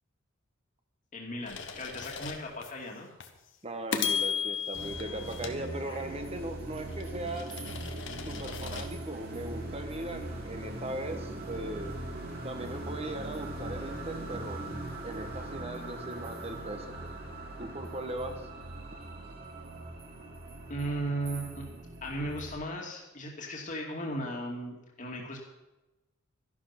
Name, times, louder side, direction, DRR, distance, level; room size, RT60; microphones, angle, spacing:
voice 1, 1.1-3.1 20.7-21.7 22.0-25.4, right 1 dB, 40° left, -1 dB, 2.4 m, -36 dB
sound 1, 1.5-2.7 3.2-3.4 3.9-6.3 6.8-8.9, left 7 dB, 65° left, 1.3 m, -36 dB
voice 2, 3.6-7.5 8.2-11.9 12.4-14.6 15.0-16.9 17.6-18.5, right 1 dB, 30° right, 6 dB, 1.5 m, -38 dB
sound 2, 4.7-22.5, right 1 dB, 50° right, 2.8 m, -40 dB
13.5 x 11.5 x 5.9 m, 1.0 s
head